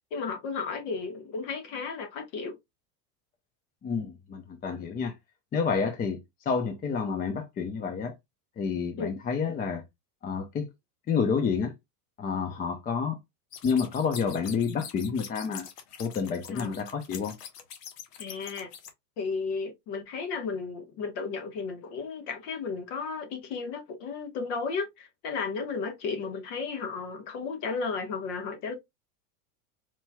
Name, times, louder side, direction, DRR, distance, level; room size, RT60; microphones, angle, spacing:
voice 1, 0.1-2.5 9.0-9.1 16.5-16.7 18.2-18.7 19.2-28.7, left 4 dB, 50° left, 1.5 m, -34 dB
voice 2, 3.8-5.1 5.5-6.2 6.5-8.1 8.6-9.8 10.2-10.7 11.1-11.7 12.2-13.2 13.6-15.7 16.0-17.4, left 5 dB, 20° left, 0.6 m, -29 dB
sound 1, 13.5-18.9, left 8 dB, 85° left, 1.3 m, -44 dB
4.4 x 2.9 x 2.2 m
supercardioid pair, 125°, 46 cm